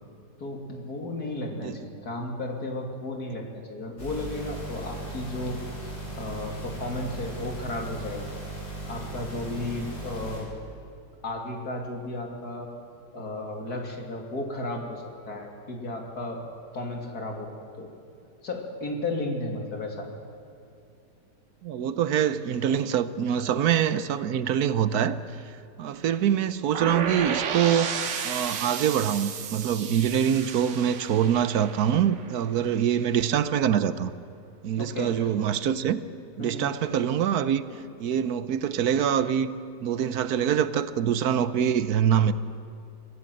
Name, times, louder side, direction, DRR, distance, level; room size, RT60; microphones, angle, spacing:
voice 1, 0.4-5.6 5.9-8.2 8.9-10.5 11.2-12.7 13.1-16.4 16.7-17.5 17.8-17.9 18.4-20.1 26.1-26.2 34.8-35.3 36.4-36.7 37.7-37.8, left 2 dB, 55° left, 3.1 m, -34 dB
sound 1, 4.0-10.4, right 2 dB, 70° left, 6.6 m, -37 dB
voice 2, 21.6-25.2 25.8-27.9 28.2-34.1 34.6-36.0 36.4-37.6 38.0-39.5 39.8-42.3, right 9 dB, 65° right, 1.2 m, -24 dB
sound 2, 26.7-32.6, right 7 dB, 85° right, 1.9 m, -32 dB
25.0 x 17.5 x 7.7 m
omnidirectional pair, 1.9 m